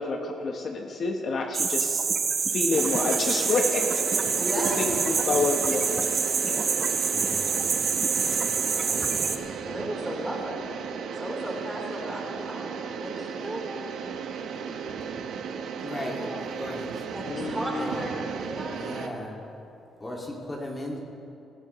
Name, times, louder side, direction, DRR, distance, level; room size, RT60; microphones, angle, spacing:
voice 1, 0.0-2.1 2.5-3.8 4.8-6.6 17.2-17.9, left 3 dB, 55° left, 3 dB, 0.9 m, -29 dB
sound 1, 1.5-9.4, right 5 dB, 45° right, 0.8 m, -26 dB
sound 2, 2.7-19.1, right 6 dB, 80° right, 0.8 m, -35 dB
voice 2, 4.3-4.8 8.7-9.1 9.6-10.6 11.2-13.9 15.8-16.5 17.1-18.1 18.4-19.1, right 1 dB, 10° right, -3 dB, 3.5 m, -35 dB
voice 3, 7.1-7.6 8.7-9.4 15.8-17.0 17.8-18.0 18.7-19.4 20.0-21.0, left 1 dB, 25° left, -2 dB, 2.0 m, -37 dB
17.5 x 13.0 x 3.0 m, 2.8 s
cardioid pair, 90°, 0 cm